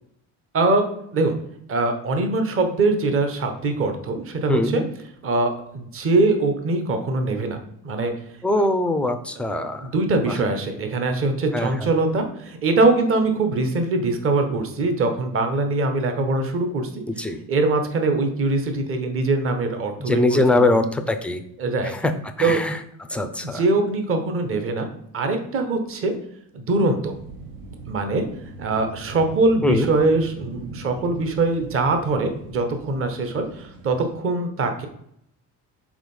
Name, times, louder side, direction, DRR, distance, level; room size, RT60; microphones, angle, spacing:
voice 1, 0.5-0.8 1.1-1.3 1.7-4.8 5.2-7.6 7.8-8.1 9.8-20.8 21.6-21.9 22.4-22.6 23.1-26.1 26.5-27.1 27.9-28.3 28.6-34.9, right 3 dB, 35° right, 6 dB, 0.9 m, -22 dB
voice 2, 4.5-4.9 8.4-9.9 10.3-10.4 11.5-11.7 17.2-17.4 20.0-21.4 22.0-22.1 22.4-22.8 23.1-23.6 29.6-29.9, left 2 dB, 5° left, 7 dB, 0.3 m, -21 dB
sound 1, 27.1-34.2, right 3 dB, 80° right, 1.2 m, -41 dB
4.9 x 3.9 x 5.3 m, 0.72 s
cardioid pair, 145°, 36 cm